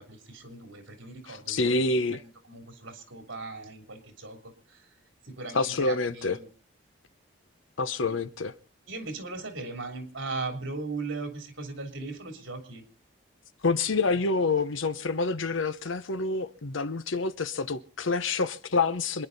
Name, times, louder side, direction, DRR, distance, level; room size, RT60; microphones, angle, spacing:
voice 1, 0.0-4.9 5.2-6.5 8.9-12.8, right 3 dB, 70° right, 3.2 m, -38 dB
voice 2, 1.3-2.2 5.5-6.4 7.8-8.5 13.6-19.3, left 3 dB, 75° left, 0.9 m, -27 dB
27.0 x 10.5 x 4.1 m
head